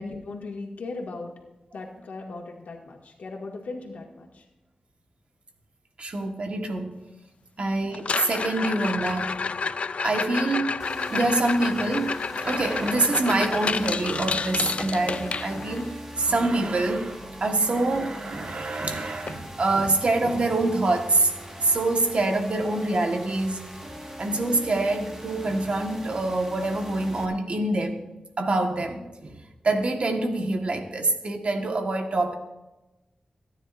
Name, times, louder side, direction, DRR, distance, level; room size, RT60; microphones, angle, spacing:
voice 1, 0.0-1.3 1.7-4.4 7.6-7.8, left 3 dB, 90° left, 0 dB, 2.0 m, -37 dB
voice 2, 6.0-7.0 7.6-9.5 10.0-10.8 11.1-15.9 16.2-21.3 21.6-23.7 24.2-28.1 28.4-32.3, right 2 dB, 50° right, 4 dB, 1.4 m, -25 dB
sound 1, 7.9-15.9 18.2-18.3 18.5-18.8 19.3-19.4 19.9-20.0 21.9-22.0, left 5 dB, 55° left, 0.4 m, -30 dB
sound 2, 10.8-27.2, right 1 dB, 20° right, 1.7 m, -41 dB
27.5 x 10.0 x 2.6 m, 1.1 s
wide cardioid pair, 125°, 3 cm